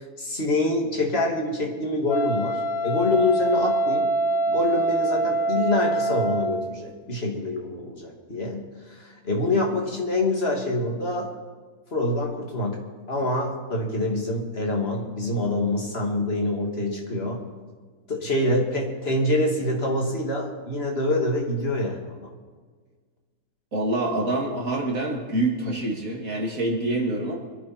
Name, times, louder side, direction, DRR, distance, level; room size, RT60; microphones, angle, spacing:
voice 1, 0.2-4.1 4.5-11.3 11.9-12.8 13.1-17.4 18.1-22.2, left 2 dB, 40° left, 0 dB, 2.7 m, -26 dB
Wind instrument woodwind instrument, 2.1-6.8, right 2 dB, 70° left, 1.7 m, -24 dB
voice 2, 23.7-27.4, right 2 dB, 60° right, -1 dB, 3.1 m, -26 dB
24.5 x 11.0 x 4.4 m, 1.5 s
omnidirectional pair, 1.6 m